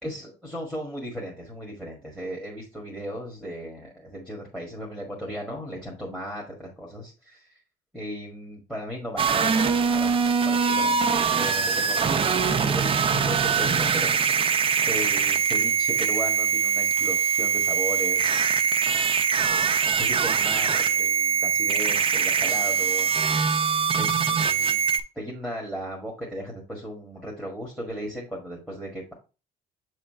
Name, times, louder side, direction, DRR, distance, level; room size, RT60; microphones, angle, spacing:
voice 1, 0.0-7.5 7.9-10.1 10.4-11.0 11.3-12.3 12.6-14.1 14.4-18.5 19.8-23.1 23.9-24.8 25.1-29.1, equal, 5° left, -2 dB, 1.7 m, -36 dB
sound 1, 9.2-25.0, right 6 dB, 30° right, 0.6 m, -23 dB
7.2 x 3.3 x 4.2 m, 0.32 s
cardioid pair, 110°, 17 cm